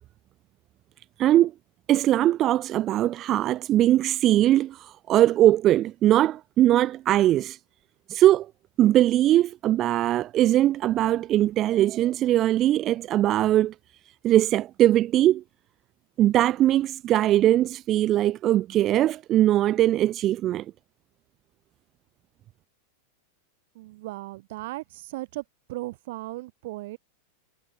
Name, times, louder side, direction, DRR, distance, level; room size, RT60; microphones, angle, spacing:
voice 1, 1.2-1.5 1.9-7.6 8.1-8.5 8.8-13.7 14.2-15.4 16.2-20.7, right 13 dB, 30° right, 2.1 m, -21 dB
voice 2, 23.7-25.4 25.7-27.0, right 19 dB, 50° right, 4.7 m, -36 dB
figure-of-eight pair, 90°, 0 cm